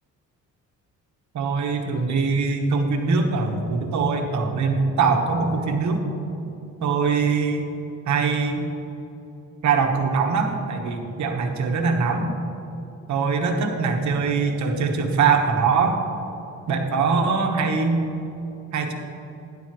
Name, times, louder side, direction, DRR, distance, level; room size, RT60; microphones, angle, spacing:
voice 1, 1.3-6.0 6.8-7.7 8.0-8.7 9.6-12.4 13.1-16.0 16.7-18.0 18.7-18.9, right 4 dB, 70° right, 3 dB, 1.3 m, -22 dB
12.0 x 10.5 x 3.1 m, 3.0 s
cardioid pair, 90°, 30 cm